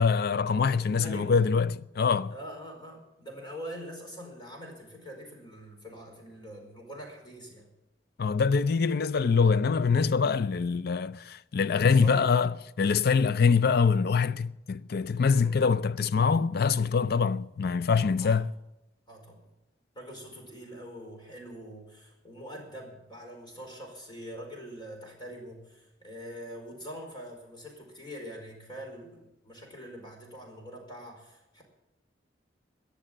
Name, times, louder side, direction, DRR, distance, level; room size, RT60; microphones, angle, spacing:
voice 1, 0.0-2.3 8.2-18.5, left 5 dB, 60° left, 0.5 m, -24 dB
voice 2, 0.7-1.3 2.3-7.7 11.7-12.3 15.3-15.7 18.2-18.4 19.1-19.4 19.9-31.6, equal, 25° left, 4.8 m, -44 dB
21.5 x 7.1 x 7.6 m
head